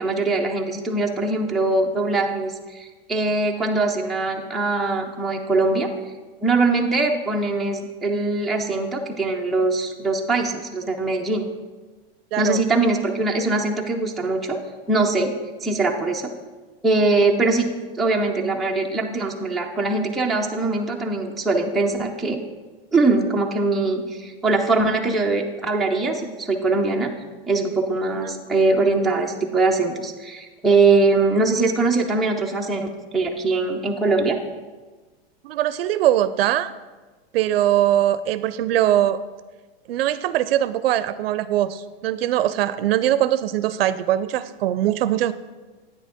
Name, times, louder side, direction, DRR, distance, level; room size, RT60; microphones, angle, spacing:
voice 1, 0.0-5.9 6.4-11.4 12.4-14.6 14.9-15.3 15.6-16.3 16.8-17.7 18.0-22.4 22.9-27.1 27.5-34.4, right 3 dB, ahead, -1 dB, 0.3 m, -22 dB
voice 2, 12.3-12.6 28.2-28.3 35.4-36.7 37.3-39.2 39.9-45.3, right 12 dB, 80° right, 15 dB, 0.4 m, -21 dB
8.9 x 7.4 x 3.5 m, 1.3 s
supercardioid pair, 140°, 30 cm